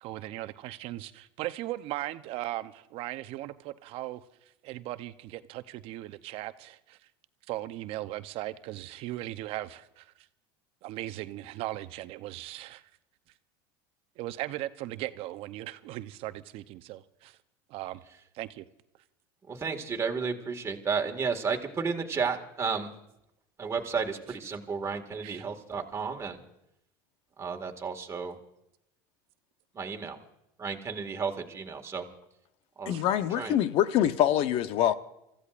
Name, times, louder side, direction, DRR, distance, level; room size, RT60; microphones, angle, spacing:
voice 1, 0.0-4.2 4.6-7.0 7.5-10.1 10.8-12.8 14.2-17.4 17.7-18.0 18.3-18.7 25.2-25.5 32.9-33.0, right 16 dB, 60° right, 0.7 m, -38 dB
voice 2, 19.5-22.9 23.6-26.4 27.4-28.4 29.7-30.2 30.6-32.0 32.8-32.9 33.4-33.6, right 5 dB, 25° right, 1.9 m, -32 dB
voice 3, 32.9-34.9, left 11 dB, 55° left, 0.8 m, -25 dB
29.0 x 15.0 x 2.5 m
supercardioid pair, 105°, 11 cm